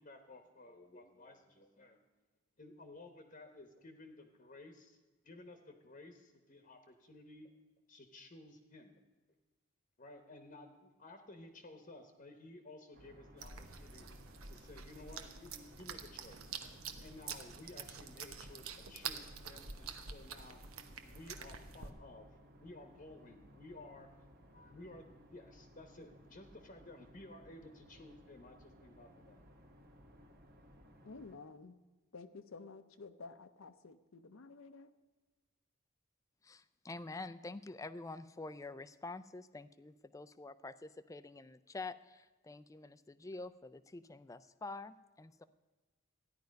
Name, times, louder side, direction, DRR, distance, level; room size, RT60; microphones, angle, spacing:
voice 1, 0.0-2.0 2.6-5.0 5.2-7.5 7.9-8.9 10.0-14.1 14.4-16.5 17.0-20.6 21.0-22.3 22.6-24.2 24.5-29.4, left 2 dB, 35° left, 6 dB, 0.9 m, -55 dB
sound 1, 12.9-31.4, equal, 45° right, 1.4 m, -60 dB
sound 2, 13.4-21.9, right 6 dB, 80° right, 1.0 m, -47 dB
voice 2, 31.0-31.8 32.1-34.9, left 4 dB, 70° left, 9 dB, 0.6 m, -52 dB
voice 3, 36.4-45.4, left 3 dB, 15° left, 13 dB, 0.3 m, -47 dB
14.0 x 10.5 x 5.2 m, 1.3 s
head